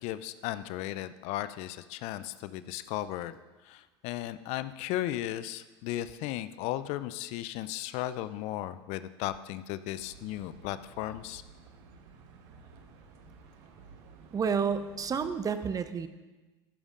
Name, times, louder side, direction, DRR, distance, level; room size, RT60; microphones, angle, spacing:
voice 1, 0.0-3.4 3.6-11.4, left 14 dB, 55° left, 14 dB, 0.5 m, -36 dB
sound 1, 10.0-15.4, right 5 dB, 60° right, 1.4 m, -53 dB
voice 2, 14.3-16.1, right 6 dB, 25° right, 11 dB, 0.7 m, -30 dB
15.0 x 11.5 x 2.5 m, 1.2 s
hypercardioid pair, 80°, 14 cm